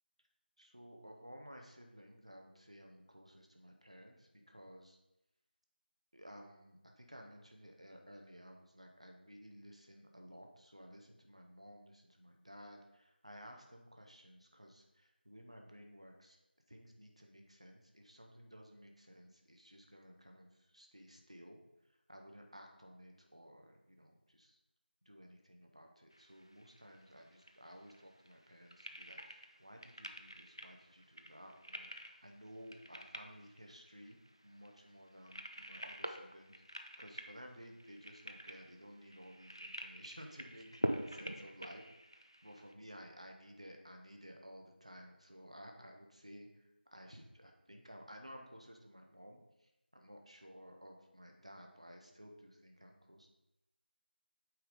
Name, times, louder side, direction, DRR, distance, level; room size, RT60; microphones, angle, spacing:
voice 1, 0.6-5.0 6.1-16.4 16.7-21.6 22.1-24.6 25.0-41.8 42.1-53.3, equal, 35° right, 2 dB, 0.9 m, -56 dB
sound 1, 26.1-42.7, right 1 dB, 30° left, 0.4 m, -46 dB
8.6 x 3.7 x 5.0 m, 0.92 s
figure-of-eight pair, 180°, 6 cm